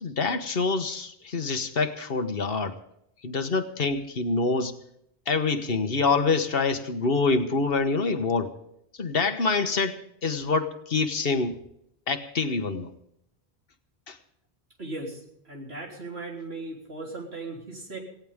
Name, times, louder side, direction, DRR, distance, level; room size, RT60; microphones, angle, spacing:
voice 1, 0.0-2.7 3.2-4.7 5.3-8.5 9.0-11.6 12.1-12.9 14.1-14.2, left 4 dB, 65° left, 8 dB, 1.4 m, -26 dB
voice 2, 14.8-18.0, right 2 dB, 80° right, 0 dB, 3.9 m, -37 dB
18.5 x 16.5 x 3.6 m, 0.74 s
omnidirectional pair, 1.1 m